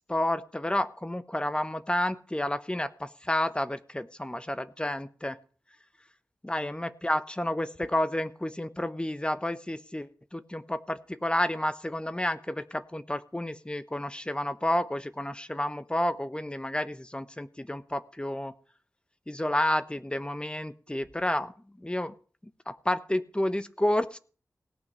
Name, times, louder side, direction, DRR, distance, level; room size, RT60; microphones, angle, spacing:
voice 1, 0.1-5.4 6.4-18.5 19.3-22.1 22.7-24.2, left 1 dB, 15° left, 13 dB, 1.1 m, -30 dB
17.5 x 5.9 x 9.5 m, 0.40 s
cardioid pair, 55°, 6 cm